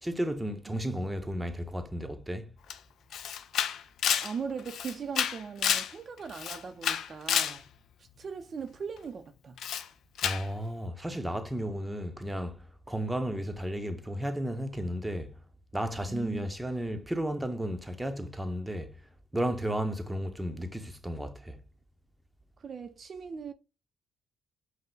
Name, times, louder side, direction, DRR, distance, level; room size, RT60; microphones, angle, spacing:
voice 1, 0.0-2.5 10.2-12.6 12.9-15.3 15.7-18.9 19.3-21.6, equal, 5° right, 0.7 m, -33 dB
Camera, 2.7-2.8 3.1-5.9 6.3-7.6 9.6-9.9 10.2-10.5, left 9 dB, 75° left, 0.4 m, -29 dB
voice 2, 4.2-7.7 8.0-9.6 16.1-16.5 22.6-23.5, right 6 dB, 45° right, 0.5 m, -39 dB
5.5 x 2.0 x 3.8 m
cardioid pair, 90°, 0 cm